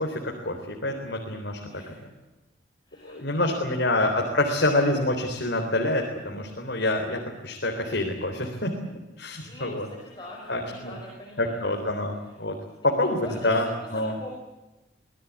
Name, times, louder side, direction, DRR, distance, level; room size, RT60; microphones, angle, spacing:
voice 1, 0.0-1.8 3.0-8.7 9.2-9.9 10.5-11.0 11.4-12.6 12.8-14.2, left 1 dB, 70° left, 1 dB, 3.8 m, -27 dB
voice 2, 1.7-2.0 2.9-3.7 9.5-9.7 10.0-11.6 13.2-13.7 13.9-14.3, left 1 dB, 25° left, -1 dB, 5.0 m, -42 dB
25.5 x 18.0 x 8.5 m, 1.1 s
head